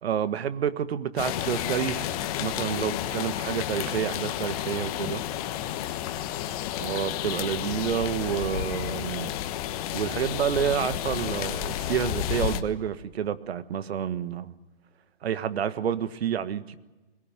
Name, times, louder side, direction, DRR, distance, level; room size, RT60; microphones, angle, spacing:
voice 1, 0.0-5.2 6.8-9.3 9.9-14.5 15.2-16.7, right 9 dB, 65° right, 1.4 m, -29 dB
sound 1, 1.2-12.6, left 11 dB, 35° left, 1.3 m, -31 dB
Acoustic guitar / Strum, 1.3-4.5, left 2 dB, 10° right, 3.8 m, -47 dB
22.0 x 18.5 x 9.0 m
hypercardioid pair, 145°, 34 cm